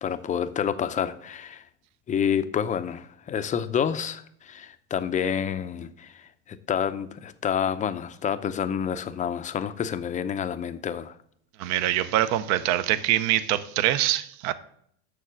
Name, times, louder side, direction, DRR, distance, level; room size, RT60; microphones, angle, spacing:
voice 1, 0.0-1.6 2.1-11.1, left 8 dB, 20° left, 11 dB, 0.5 m, -28 dB
voice 2, 11.6-14.5, right 13 dB, 50° right, 14 dB, 0.7 m, -24 dB
6.8 x 6.4 x 6.2 m, 0.66 s
supercardioid pair, 115°, 35 cm